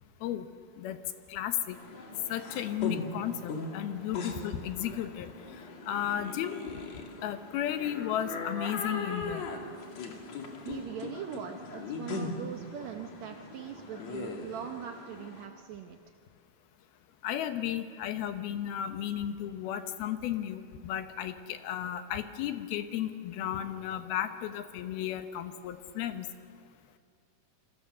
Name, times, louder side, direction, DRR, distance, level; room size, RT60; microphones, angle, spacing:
voice 1, 1.3-1.8 2.3-5.3 5.9-6.6 7.2-9.4 17.2-26.3, left 11 dB, 75° left, 8 dB, 2.9 m, -34 dB
sound 1, 1.7-15.5, left 3 dB, 45° left, 3.1 m, -40 dB
voice 2, 10.6-16.0, right 8 dB, 75° right, 4 dB, 1.6 m, -41 dB
28.0 x 24.5 x 6.8 m, 2.4 s
omnidirectional pair, 4.6 m